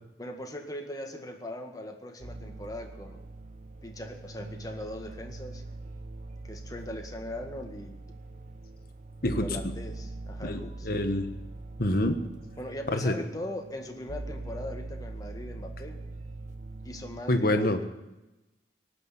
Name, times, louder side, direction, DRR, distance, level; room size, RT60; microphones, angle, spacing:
voice 1, 0.2-3.3 3.8-5.6 6.4-8.0 9.3-11.0 12.6-16.0 16.8-17.8, left 1 dB, 20° left, 3 dB, 1.8 m, -40 dB
sound 1, 2.2-17.2, right 2 dB, 45° right, 1.0 m, -42 dB
voice 2, 9.2-9.7 10.4-11.3 11.8-12.2 12.9-13.1 17.3-17.8, left 1 dB, 55° left, 7 dB, 1.4 m, -27 dB
18.5 x 6.6 x 9.8 m, 0.99 s
head